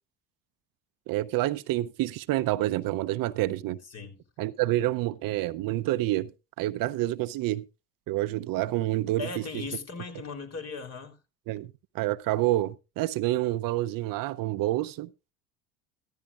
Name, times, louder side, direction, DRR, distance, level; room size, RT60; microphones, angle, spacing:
voice 1, 1.1-3.8 4.4-6.3 6.6-7.6 8.1-9.3 11.5-15.1, right 16 dB, 60° right, 0.7 m, -28 dB
voice 2, 3.8-4.2 9.2-11.2, left 4 dB, 45° left, 3.6 m, -38 dB
14.5 x 14.0 x 2.4 m
supercardioid pair, 85°, 37 cm